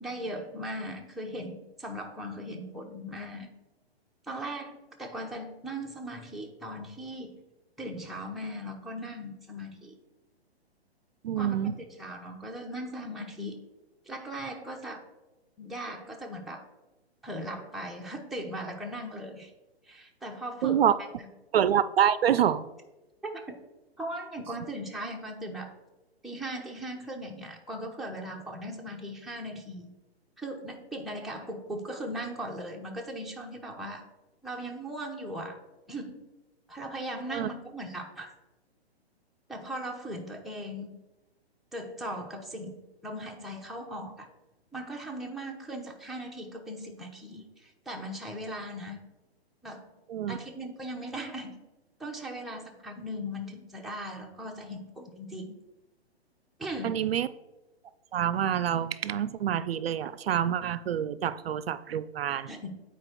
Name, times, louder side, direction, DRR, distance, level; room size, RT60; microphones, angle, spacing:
voice 1, 0.0-3.6 4.2-7.4 7.8-10.0 11.4-11.7 12.0-13.6 14.1-15.0 15.6-16.6 17.2-19.5 19.8-20.9 21.2-21.3 23.2-23.4 24.0-25.7 26.2-29.9 30.4-34.0 34.4-35.6 35.9-36.3 36.7-38.3 39.5-41.0 41.7-44.3 44.7-49.0 49.6-49.9 50.3-51.6 52.0-55.6 56.6-57.1 62.5-62.8, equal, ahead, -2 dB, 0.8 m, -38 dB
voice 2, 11.2-11.7 20.6-20.9 21.5-22.7 37.3-37.5 50.1-50.4 56.8-57.3 58.1-62.5, right 9 dB, 65° right, 15 dB, 0.5 m, -26 dB
8.8 x 4.5 x 4.5 m, 1.0 s
hypercardioid pair, 130°, 32 cm